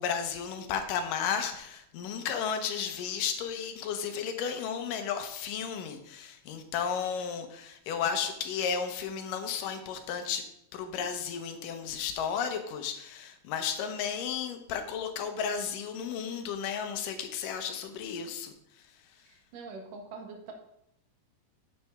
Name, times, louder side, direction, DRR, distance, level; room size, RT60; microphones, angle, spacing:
voice 1, 0.0-10.4 10.7-18.5, left 7 dB, 80° left, 7 dB, 2.5 m, -33 dB
voice 2, 19.2-20.5, right 4 dB, 75° right, 3 dB, 2.9 m, -44 dB
9.4 x 7.3 x 3.5 m, 0.77 s
omnidirectional pair, 3.9 m